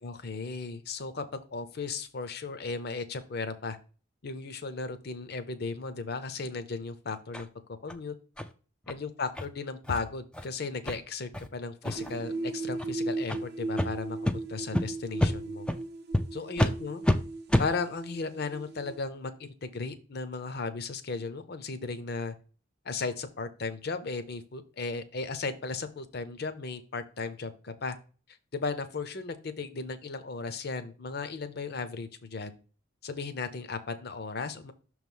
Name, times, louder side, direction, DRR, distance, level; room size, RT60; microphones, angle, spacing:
voice 1, 0.0-3.8 4.2-7.5 7.8-8.1 8.9-15.7 16.3-17.0 17.6-22.3 22.8-28.0 28.5-32.6 33.0-34.7, left 4 dB, 55° left, 10 dB, 0.6 m, -36 dB
sound 1, 7.3-7.5 7.9-8.0 8.4-8.5 8.9-9.0 9.4-9.5 9.8-10.0 10.3-10.5 10.9-11.0 11.3-11.5 11.8-12.2 12.7-12.9 13.3-13.4 13.8-13.9 14.2-14.4 14.7-14.8 15.2-15.3 15.7-15.8 16.1-16.2 16.6-16.7 17.0-17.2 17.5-17.7, left 1 dB, 5° left, 0.3 m, -27 dB
sound 2, 11.9-19.0, right 2 dB, 55° right, 0.6 m, -37 dB
6.2 x 3.1 x 5.3 m, 0.37 s
head